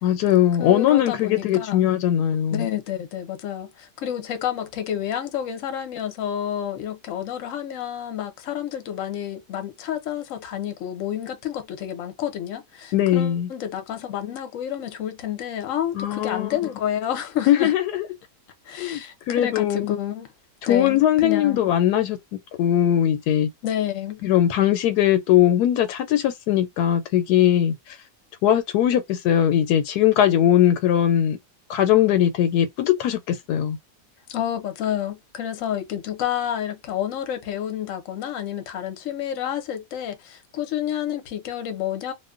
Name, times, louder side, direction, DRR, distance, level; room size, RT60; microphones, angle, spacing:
voice 1, 0.0-2.7 12.9-13.5 15.9-16.6 17.5-18.0 18.8-19.0 19.3-20.0 20.6-23.5 24.2-28.0 28.4-31.4 31.7-33.8, left 11 dB, 90° left, 1.1 m, -20 dB
voice 2, 0.6-1.8 2.5-17.7 18.6-20.3 20.7-21.6 23.6-24.2 34.3-42.1, left 10 dB, 65° left, 1.0 m, -29 dB
2.8 x 2.1 x 2.4 m
omnidirectional pair, 1.6 m